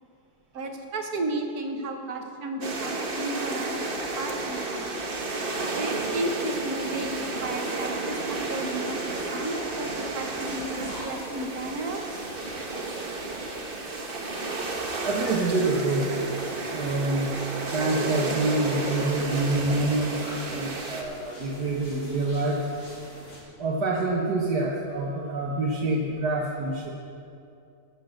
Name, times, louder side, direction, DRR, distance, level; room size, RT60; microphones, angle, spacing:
voice 1, 0.5-4.9 5.7-9.0 9.3-12.0, right 2 dB, 70° right, 4 dB, 1.8 m, -33 dB
sound 1, 2.6-21.0, right 2 dB, 40° right, 1.3 m, -32 dB
sound 2, 8.1-23.4, left 1 dB, 70° left, 3.6 m, -45 dB
voice 2, 15.0-16.1 16.7-17.3 17.7-20.2 20.5-22.6 23.6-26.9, right 2 dB, 85° right, -3 dB, 1.8 m, -26 dB
16.0 x 7.7 x 6.5 m, 2.6 s
omnidirectional pair, 1.7 m